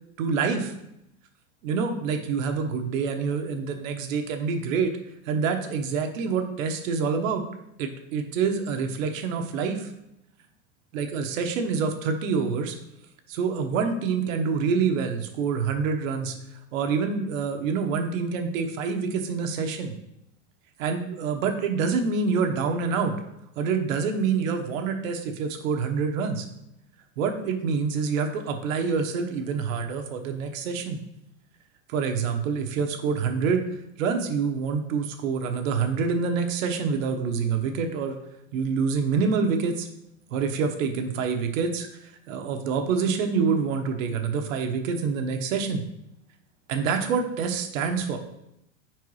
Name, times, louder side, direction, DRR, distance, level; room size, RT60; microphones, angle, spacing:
voice 1, 0.2-0.7 1.6-5.0 5.3-7.4 7.8-9.9 10.9-12.8 13.3-16.3 16.7-19.9 20.8-23.2 23.6-26.5 27.2-31.0 31.9-33.6 34.0-38.2 38.5-39.9 40.3-45.9 46.7-48.2, right 5 dB, 80° right, 5 dB, 1.1 m, -26 dB
4.7 x 4.6 x 4.7 m, 0.82 s
supercardioid pair, 180°, 39 cm